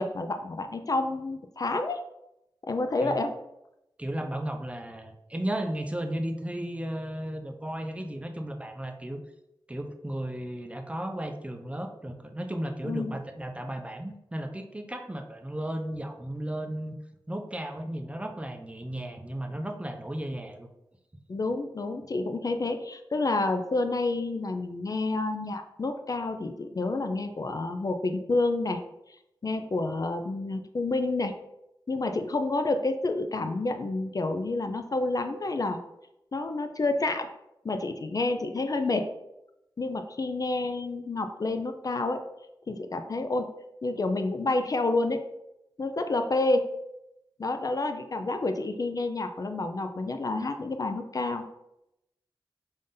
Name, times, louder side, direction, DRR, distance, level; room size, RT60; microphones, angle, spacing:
voice 1, 0.0-2.0 2.6-3.3 12.8-13.2 21.3-28.8 29.4-31.3 31.9-35.8 36.3-37.3 37.6-39.1 39.8-42.2 42.7-43.5 43.8-45.2 45.8-46.7 47.4-51.4, left 2 dB, 45° left, 7 dB, 0.4 m, -29 dB
voice 2, 4.0-9.2 9.7-16.9 17.3-20.7, right 1 dB, 15° right, 5 dB, 0.5 m, -34 dB
5.2 x 2.6 x 3.8 m, 0.88 s
wide cardioid pair, 75°, 9 cm